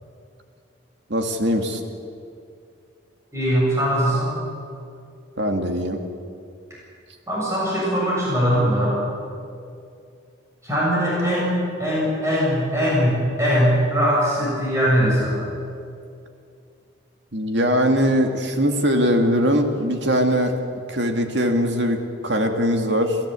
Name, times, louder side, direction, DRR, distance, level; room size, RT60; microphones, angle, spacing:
voice 1, 1.1-1.8 5.4-6.0 17.3-20.5 20.9-23.2, equal, 70° right, 5 dB, 2.3 m, -21 dB
voice 2, 3.3-4.3 7.3-8.9 10.6-15.4, equal, 15° right, -6 dB, 7.4 m, -21 dB
27.5 x 15.0 x 8.3 m, 2.4 s
head